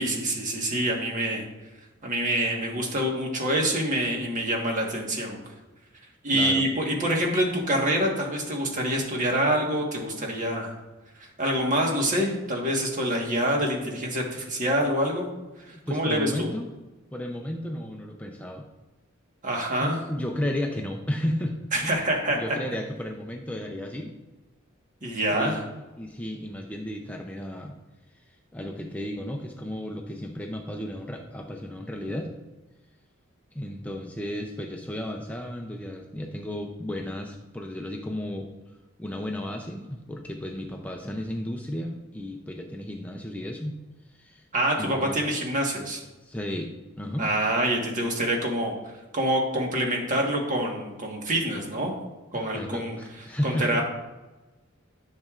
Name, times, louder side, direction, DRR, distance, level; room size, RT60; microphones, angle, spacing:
voice 1, 0.0-1.5 2.0-5.4 6.2-10.7 11.2-15.3 15.7-16.5 19.4-20.0 21.7-22.4 25.0-25.6 44.5-46.0 47.2-48.8 49.1-51.9 52.3-53.0 53.4-53.8, right 1 dB, 40° right, 0 dB, 1.4 m, -26 dB
voice 2, 6.3-6.7 15.7-16.6 17.1-18.7 19.8-22.0 22.3-24.1 25.4-25.6 26.0-27.7 28.1-32.3 33.5-43.8 44.1-44.5 44.8-45.2 46.2-46.7 47.0-47.3 52.3-53.8, left 1 dB, 10° left, 2 dB, 0.5 m, -33 dB
10.5 x 6.5 x 2.5 m, 1.1 s
head